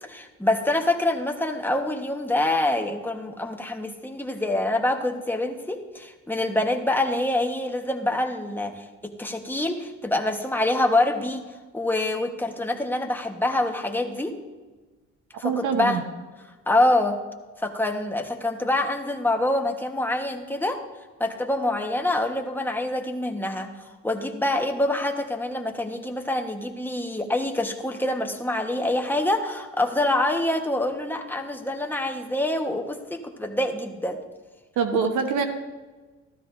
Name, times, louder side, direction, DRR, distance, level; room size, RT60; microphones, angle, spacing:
voice 1, 0.0-11.4 11.7-14.3 15.4-16.0 16.7-17.2 17.6-20.8 21.2-23.7 24.0-34.2 34.9-35.1, left 1 dB, 5° left, 3 dB, 1.2 m, -26 dB
voice 2, 15.4-16.0 34.8-35.4, right 6 dB, 80° right, 6 dB, 1.1 m, -24 dB
14.5 x 13.0 x 2.6 m, 1.3 s
cardioid pair, 90°, 30 cm